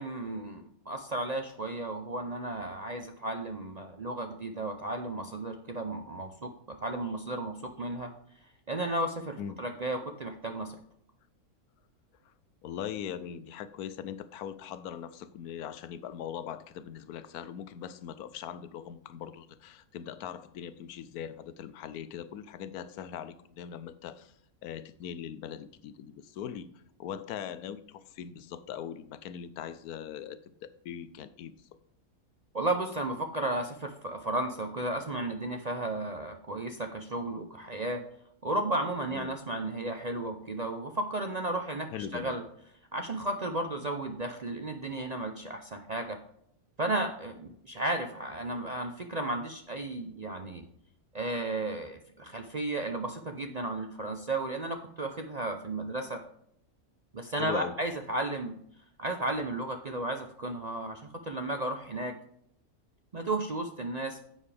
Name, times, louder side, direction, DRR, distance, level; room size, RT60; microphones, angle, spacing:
voice 1, 0.0-8.1 8.7-10.8 32.5-38.0 38.4-42.4 42.9-46.2 46.8-50.7 51.1-56.2 57.1-58.6 59.0-62.1 63.1-64.2, right 2 dB, 45° right, 5 dB, 0.5 m, -34 dB
voice 2, 12.6-24.3 24.6-26.7 27.0-31.6 39.1-39.3 41.9-42.3 57.4-57.8, left 9 dB, 90° left, 14 dB, 1.2 m, -40 dB
10.5 x 7.4 x 3.4 m, 0.71 s
omnidirectional pair, 1.6 m